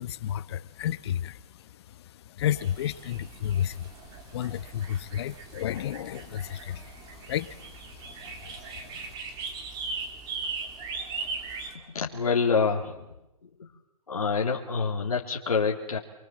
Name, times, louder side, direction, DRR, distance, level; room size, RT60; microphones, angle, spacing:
voice 1, 0.0-9.1, left 11 dB, 45° left, 1.0 m, -33 dB
sound 1, 2.5-11.7, right 4 dB, 20° right, 3.6 m, -39 dB
voice 2, 11.7-13.1 13.4-13.7 14.1-16.0, left 5 dB, 85° left, 3.2 m, -27 dB
28.0 x 22.5 x 7.6 m
hypercardioid pair, 140°, 18 cm